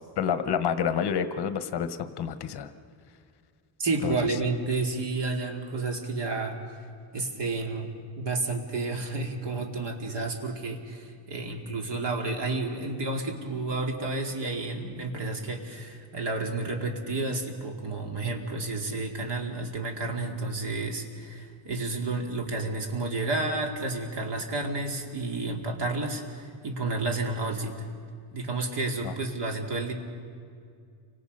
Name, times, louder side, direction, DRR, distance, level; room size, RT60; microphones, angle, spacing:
voice 1, 0.0-2.7 4.0-4.2 29.0-29.1, left 8 dB, 50° left, 10 dB, 1.1 m, -29 dB
voice 2, 3.8-6.6 7.1-7.9 8.2-27.9 28.3-29.9, right 3 dB, 55° right, 3 dB, 2.9 m, -31 dB
30.0 x 25.5 x 5.4 m, 2.3 s
cardioid pair, 160°, 49 cm